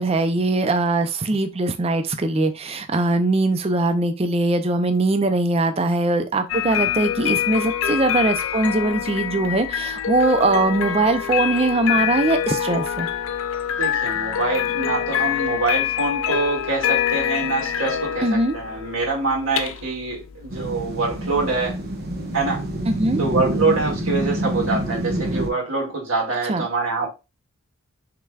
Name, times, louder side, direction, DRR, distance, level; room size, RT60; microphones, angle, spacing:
voice 1, 0.0-13.1 18.2-18.6 22.9-23.2 26.5-26.7, right 2 dB, 25° right, 0.4 m, -21 dB
sound 1, 6.5-25.5, left 10 dB, 65° left, 0.4 m, -26 dB
voice 2, 13.8-21.8 22.3-22.6 23.2-27.1, right 3 dB, 70° right, 2.0 m, -25 dB
sound 2, 20.5-25.5, right 1 dB, 45° right, 1.1 m, -26 dB
5.8 x 3.3 x 2.3 m
head